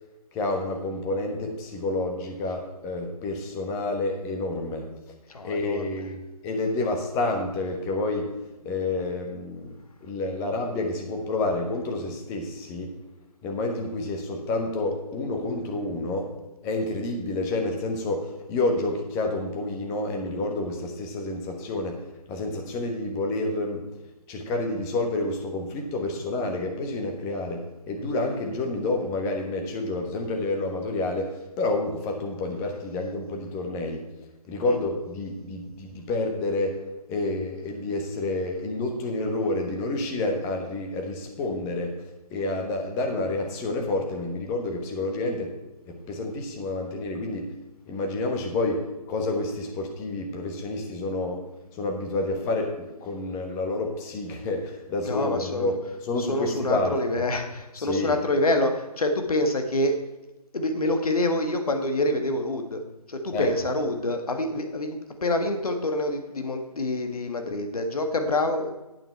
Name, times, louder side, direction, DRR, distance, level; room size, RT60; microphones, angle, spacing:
voice 1, 0.3-4.9 5.4-8.3 8.6-9.7 10.0-12.9 13.4-16.3 16.6-22.0 22.3-23.8 24.3-34.0 34.5-36.8 37.1-41.9 42.3-45.5 45.9-47.5 47.9-51.4 51.7-57.0 57.8-58.2 63.3-63.5, left 2 dB, 15° left, 3 dB, 1.2 m, -29 dB
voice 2, 5.3-5.9 34.7-34.8 55.0-55.7 56.2-60.0 60.5-62.8 63.1-68.7, left 1 dB, 65° left, 5 dB, 1.7 m, -26 dB
9.2 x 8.9 x 4.6 m, 1.0 s
figure-of-eight pair, 145°, 20 cm